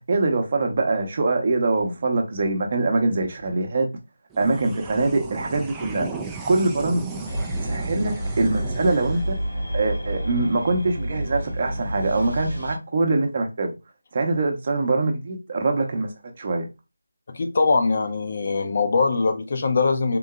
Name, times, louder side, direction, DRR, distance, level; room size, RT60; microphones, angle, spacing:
voice 1, 0.1-3.9 4.4-6.1 6.5-7.2 7.6-9.4 9.7-13.7 14.1-16.1 16.4-16.7, right 3 dB, 40° right, 0.7 m, -23 dB
sound 1, 4.3-11.0, right 4 dB, 10° right, 0.3 m, -36 dB
sound 2, 7.2-12.8, right 1 dB, 90° left, 1.7 m, -29 dB
voice 2, 17.3-20.2, left 4 dB, 40° left, 0.6 m, -22 dB
3.8 x 2.7 x 2.2 m
figure-of-eight pair, 160°, 0 cm